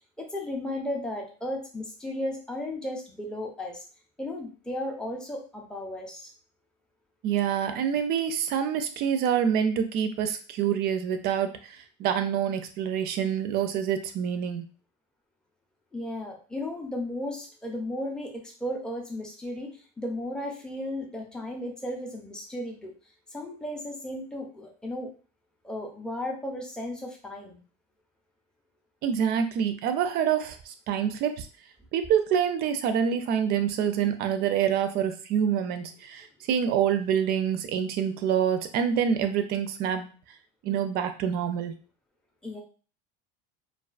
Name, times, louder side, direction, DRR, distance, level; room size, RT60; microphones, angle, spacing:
voice 1, 0.2-3.8 4.2-6.3 15.9-22.9 23.3-25.1 25.6-27.6 42.4-42.6, left 1 dB, 5° left, 0 dB, 0.5 m, -35 dB
voice 2, 7.2-14.6 29.0-31.5 31.9-40.1 40.6-41.7, right 8 dB, 50° right, 8 dB, 0.4 m, -26 dB
2.3 x 2.3 x 2.3 m, 0.37 s
supercardioid pair, 115°, 21 cm